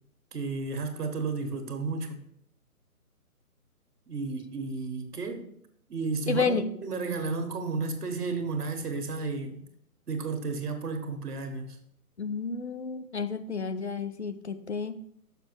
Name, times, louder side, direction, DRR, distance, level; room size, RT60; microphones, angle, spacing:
voice 1, 0.3-2.2 4.1-5.5 5.9-9.7 10.1-11.8, right 4 dB, 85° right, 1.6 m, -33 dB
voice 2, 6.3-6.7 12.2-14.9, left 5 dB, 50° left, 0.5 m, -31 dB
6.6 x 5.0 x 4.5 m
hypercardioid pair, 175°, 45 cm